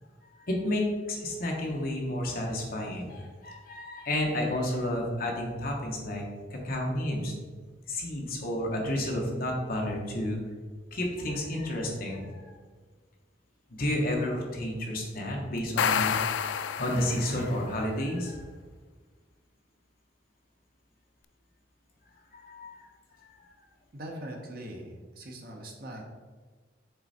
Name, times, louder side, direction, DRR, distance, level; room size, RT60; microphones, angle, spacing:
voice 1, 0.4-6.2 6.5-7.3 7.9-10.4 10.9-12.6 13.7-16.1 16.8-18.4 22.3-22.8 23.2-23.5, left 1 dB, 50° left, 0 dB, 1.2 m, -31 dB
sound 1, 15.6-17.5, left 7 dB, 80° left, 0.3 m, -29 dB
voice 2, 23.9-26.0, right 1 dB, 55° right, 1 dB, 1.0 m, -41 dB
6.8 x 4.0 x 4.2 m, 1.4 s
head